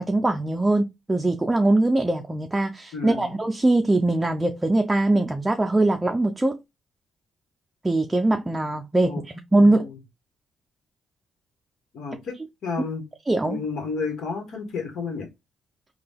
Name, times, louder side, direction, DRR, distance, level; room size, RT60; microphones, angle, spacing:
voice 1, 0.0-6.6 7.8-9.8 13.3-13.6, right 2 dB, 15° right, 0.5 m, -22 dB
voice 2, 2.9-3.3 9.0-9.2 9.6-10.0 11.9-12.4 12.6-13.0 13.4-15.3, left 4 dB, 70° left, 1.3 m, -31 dB
3.9 x 2.3 x 3.4 m
cardioid pair, 90°, 0 cm